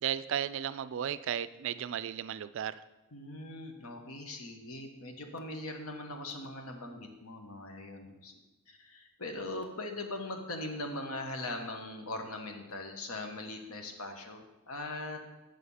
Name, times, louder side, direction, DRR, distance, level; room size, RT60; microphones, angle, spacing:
voice 1, 0.0-2.8, right 9 dB, 60° right, 15 dB, 0.3 m, -34 dB
voice 2, 3.1-8.3 8.7-15.4, left 2 dB, 85° left, 4 dB, 1.2 m, -41 dB
6.6 x 6.5 x 5.5 m, 1.1 s
head